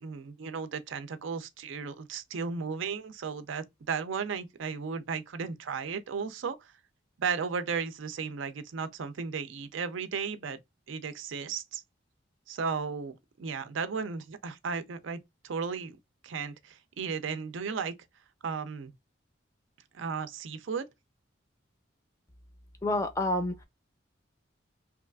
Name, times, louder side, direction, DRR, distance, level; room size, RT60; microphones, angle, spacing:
voice 1, 0.0-6.7 7.2-10.6 10.9-11.8 12.5-16.0 16.2-17.9 18.4-18.9 19.9-20.9, right 5 dB, 80° right, 0.5 m, -35 dB
voice 2, 22.8-23.6, left 1 dB, 15° left, 0.4 m, -28 dB
2.8 x 2.4 x 2.2 m
head